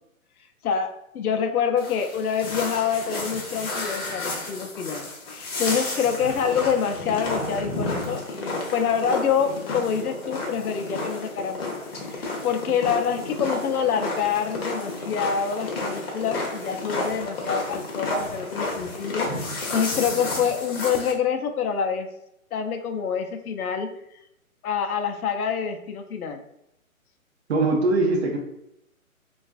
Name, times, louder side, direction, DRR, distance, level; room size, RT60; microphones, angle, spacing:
voice 1, 0.6-19.3 19.7-22.1 22.5-23.9 24.6-26.4, left 7 dB, 85° left, 6 dB, 0.5 m, -26 dB
sound 1, 1.8-21.1, left 2 dB, 45° left, 0.7 m, -31 dB
voice 2, 27.5-28.4, right 2 dB, 50° right, 2 dB, 0.6 m, -21 dB
2.4 x 2.3 x 2.3 m, 0.81 s
hypercardioid pair, 145°, 43 cm